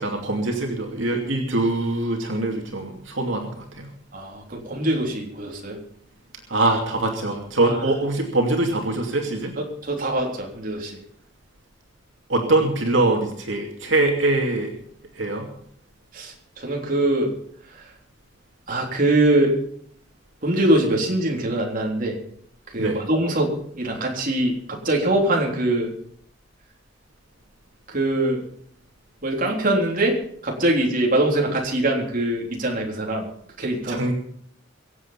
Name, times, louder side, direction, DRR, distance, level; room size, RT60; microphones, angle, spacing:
voice 1, 0.0-3.9 6.5-9.5 12.3-14.7 15.1-15.5 22.8-23.0 33.9-34.1, right 2 dB, 80° right, 1 dB, 2.6 m, -23 dB
voice 2, 4.1-5.8 7.6-7.8 9.6-11.0 16.1-17.3 17.7-17.9 18.7-19.5 20.4-22.2 22.7-25.9 27.9-28.4 29.2-30.1 30.4-33.3 33.6-34.0, right 1 dB, 45° right, 0 dB, 3.6 m, -23 dB
24.0 x 8.2 x 5.7 m, 0.66 s
head